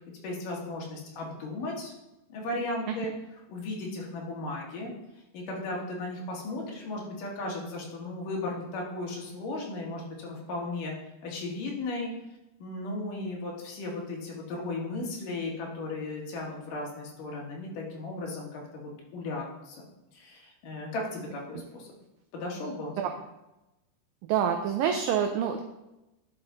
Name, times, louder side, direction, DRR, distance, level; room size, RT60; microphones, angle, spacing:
voice 1, 0.2-1.9 2.3-3.1 3.5-4.9 5.3-10.9 11.2-12.1 12.6-19.8 20.1-22.0 22.3-23.0, left 2 dB, 60° left, -2 dB, 3.0 m, -36 dB
voice 2, 24.3-25.6, right 8 dB, 90° right, 5 dB, 1.9 m, -26 dB
10.5 x 5.8 x 3.8 m, 0.96 s
omnidirectional pair, 4.7 m